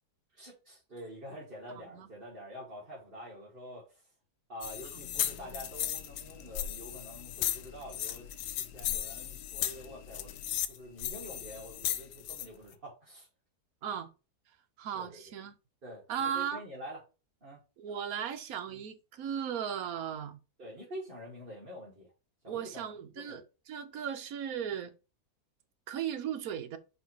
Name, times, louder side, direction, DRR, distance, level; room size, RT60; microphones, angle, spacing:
voice 1, 0.3-4.0 4.5-8.3 8.6-10.4 10.7-13.3 14.9-15.2 15.8-17.0 17.4-17.6 18.7-18.8 20.6-22.1 22.4-22.9 23.3-23.4, equal, 35° right, 2.4 m, -47 dB
sound 1, 4.6-12.5, left 11 dB, 90° left, 1.2 m, -36 dB
voice 2, 14.8-15.5 16.1-16.6 17.8-20.4 22.5-24.9 25.9-26.8, right 8 dB, 65° right, 1.2 m, -36 dB
4.8 x 4.4 x 4.4 m
omnidirectional pair, 1.7 m